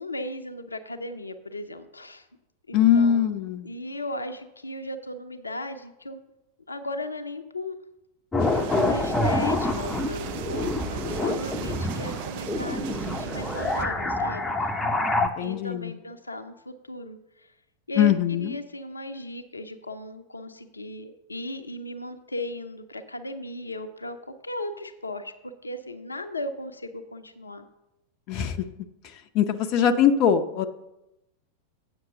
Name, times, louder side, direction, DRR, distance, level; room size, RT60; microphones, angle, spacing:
voice 1, 0.0-2.3 2.7-3.3 3.6-6.3 6.7-7.8 8.7-14.7 15.4-17.2 17.9-24.2 24.4-25.3 25.6-27.7, left 1 dB, 80° left, 7 dB, 0.6 m, -36 dB
voice 2, 2.7-3.7 15.2-15.9 18.0-18.5 28.3-28.6 29.3-30.7, left 9 dB, 40° left, 8 dB, 0.6 m, -22 dB
sound 1, 8.3-15.3, left 2 dB, 10° left, 0.8 m, -27 dB
sound 2, 8.4-13.8, right 11 dB, 45° right, 0.5 m, -36 dB
8.0 x 6.0 x 6.9 m, 0.92 s
figure-of-eight pair, 90°, 0 cm